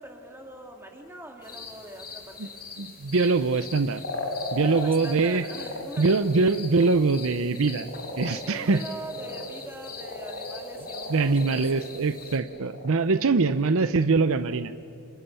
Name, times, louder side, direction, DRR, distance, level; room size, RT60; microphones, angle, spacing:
voice 1, 0.0-2.5 4.5-6.2 8.4-11.9, right 1 dB, 10° right, 2 dB, 3.3 m, -42 dB
sound 1, 1.4-12.4, left 5 dB, 45° left, 3.9 m, -43 dB
voice 2, 2.8-4.0 4.5-5.4 6.0-7.9 8.2-8.8 11.1-14.7, right 4 dB, 65° right, 12 dB, 0.7 m, -23 dB
sound 2, 4.0-5.1 5.3-5.8 6.2-6.4 6.8-6.9 7.1-7.2 7.6-9.5 9.8-12.9, left 2 dB, 65° left, 5.1 m, -36 dB
29.0 x 27.5 x 7.0 m, 2.6 s
head